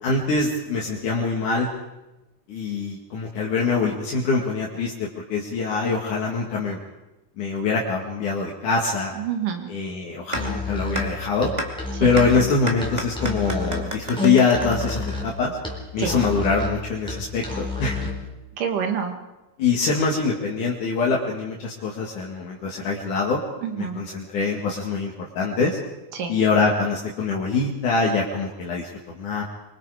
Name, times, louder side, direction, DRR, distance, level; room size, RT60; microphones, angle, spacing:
voice 1, 0.0-1.7 2.5-6.8 7.4-9.1 9.7-11.5 12.0-15.6 15.9-18.0 19.6-23.4 23.8-25.8 26.3-29.4, left 4 dB, 70° left, -2 dB, 3.5 m, -24 dB
voice 2, 9.2-9.7 11.9-12.1 16.0-16.2 18.6-19.1 23.6-24.0 26.1-26.3, right 7 dB, 80° right, 4 dB, 3.7 m, -27 dB
Musical instrument, 10.3-18.2, left 3 dB, ahead, 4.0 m, -30 dB
sound 1, 10.3-10.4 10.9-11.0 11.6-11.7 12.2-12.3 12.7-15.6, right 1 dB, 15° right, 2.3 m, -30 dB
25.5 x 24.0 x 5.0 m, 1.0 s
omnidirectional pair, 3.7 m